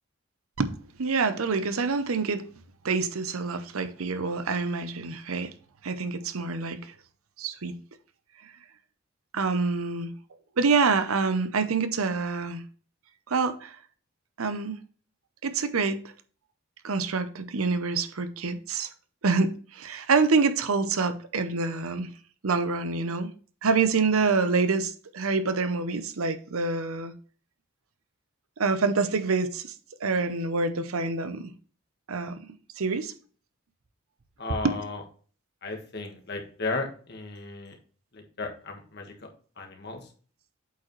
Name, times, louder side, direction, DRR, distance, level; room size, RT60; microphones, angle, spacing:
voice 1, 0.6-2.4 2.8-5.5 5.8-6.9 7.4-7.8 9.3-10.1 10.6-12.6 13.3-13.8 14.4-14.8 15.4-16.0 16.8-18.9 19.2-22.1 22.4-23.3 23.6-27.1 28.6-29.7 30.0-31.5 32.1-32.4 32.8-33.1 34.6-34.7, right 4 dB, 85° right, 0.7 m, -26 dB
voice 2, 34.4-35.0 35.6-37.8 38.1-39.1 39.6-40.1, left 3 dB, 50° left, 1.5 m, -35 dB
8.1 x 5.0 x 3.1 m
head